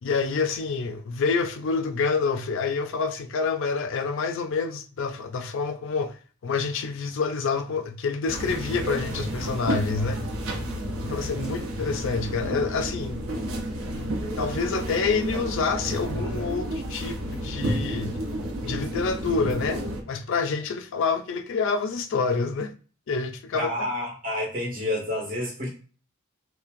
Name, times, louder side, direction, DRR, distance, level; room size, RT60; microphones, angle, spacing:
voice 1, 0.0-6.2 6.4-10.2 11.0-13.2 13.9-18.2 18.6-19.8 20.1-22.7 23.1-23.9, left 4 dB, 65° left, 0.4 m, -27 dB
sound 1, 8.3-20.0, right 1 dB, 70° right, 0.7 m, -31 dB
voice 2, 23.5-25.7, left 1 dB, 45° right, 1.7 m, -29 dB
5.5 x 2.1 x 2.5 m
head